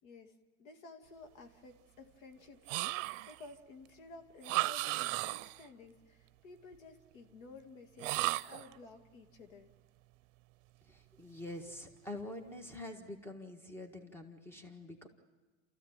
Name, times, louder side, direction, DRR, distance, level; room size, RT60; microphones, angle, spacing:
voice 1, 0.0-9.7, left 3 dB, 75° left, 6 dB, 2.4 m, -54 dB
sound 1, 2.7-3.5 4.4-5.7 8.0-8.7, right 20 dB, 65° right, 0.7 m, -35 dB
voice 2, 10.8-15.1, left 1 dB, 5° left, 6 dB, 1.6 m, -46 dB
28.0 x 15.0 x 8.9 m, 1.3 s
supercardioid pair, 140°, 40 cm